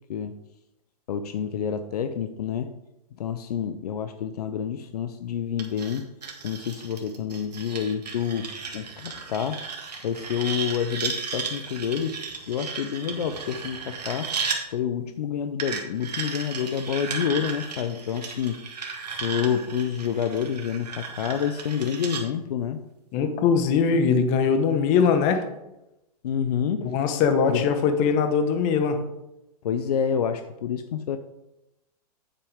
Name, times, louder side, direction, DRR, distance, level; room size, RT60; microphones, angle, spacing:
voice 1, 1.1-2.7 3.2-6.1 6.4-9.6 10.0-12.1 12.5-14.3 14.7-18.6 19.2-22.8 26.2-27.0 27.5-27.6 29.6-31.2, left 8 dB, 75° left, 9 dB, 0.7 m, -28 dB
sound 1, 5.6-14.6 15.6-22.2, right 5 dB, 85° right, 2.0 m, -35 dB
voice 2, 23.1-25.4 26.8-29.0, left 6 dB, 40° left, 7 dB, 1.4 m, -21 dB
9.2 x 8.2 x 3.6 m, 0.92 s
hypercardioid pair, 125°, 20 cm